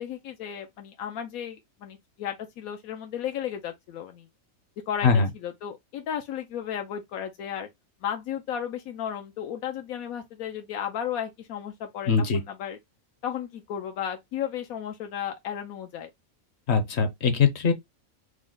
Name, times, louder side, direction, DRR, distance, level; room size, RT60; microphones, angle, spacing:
voice 1, 0.0-4.3 4.9-7.7 8.0-12.8 13.2-16.1, left 9 dB, 85° left, 1.1 m, -34 dB
voice 2, 12.1-12.4 16.7-17.7, left 5 dB, 55° left, 1.0 m, -21 dB
4.9 x 2.1 x 3.8 m
omnidirectional pair, 1.4 m